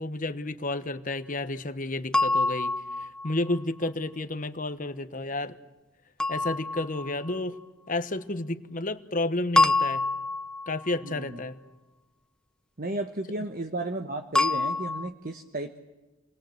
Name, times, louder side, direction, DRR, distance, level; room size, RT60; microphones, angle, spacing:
voice 1, 0.0-5.6 6.3-7.6 7.9-10.0 10.7-11.6, left 2 dB, 40° left, 11 dB, 1.1 m, -31 dB
sound 1, 2.1-3.6 6.2-7.4 9.6-11.0 14.4-15.1, left 2 dB, 5° left, 0.8 m, -26 dB
voice 2, 12.8-15.8, right 2 dB, 45° right, 6 dB, 1.1 m, -33 dB
29.0 x 20.5 x 7.9 m, 1.2 s
head